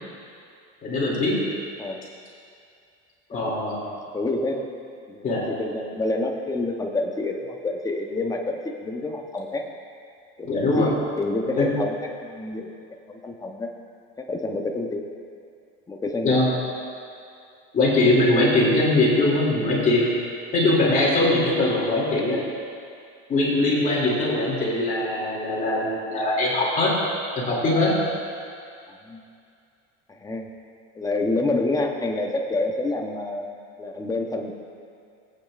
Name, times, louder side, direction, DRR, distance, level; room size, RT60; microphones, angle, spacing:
voice 1, 0.8-1.4 3.3-3.8 5.2-5.5 10.4-10.9 11.5-11.7 16.2-16.5 17.7-20.1 20.5-22.4 23.3-26.9 27.4-27.9, left 2 dB, 25° left, -6 dB, 2.8 m, -21 dB
voice 2, 4.1-4.6 5.1-9.7 10.4-12.7 13.1-13.7 14.2-15.0 15.9-16.4 28.9-29.2 30.1-30.5 30.9-33.5 33.8-34.5, left 2 dB, 10° left, 1 dB, 0.9 m, -28 dB
18.5 x 8.8 x 2.5 m, 2.4 s
cardioid pair, 140°, 30 cm